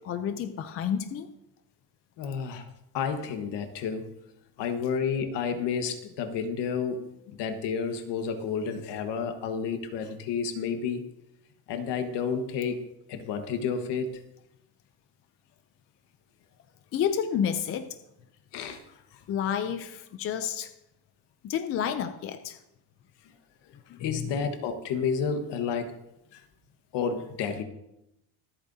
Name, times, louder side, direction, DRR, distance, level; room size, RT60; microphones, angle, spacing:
voice 1, 0.0-1.3 16.9-18.0 19.3-20.7 21.4-22.6 23.9-24.4, left 8 dB, 30° left, 9 dB, 0.4 m, -30 dB
voice 2, 2.2-4.1 4.6-7.1 7.4-11.0 11.7-12.8 13.1-14.2 18.5-18.8 19.1-19.2 23.2-23.3 24.0-26.0 26.3-26.4 26.9-27.6, left 6 dB, 55° left, 7 dB, 1.4 m, -31 dB
24.5 x 8.5 x 2.7 m, 0.85 s
cardioid pair, 165°, 48 cm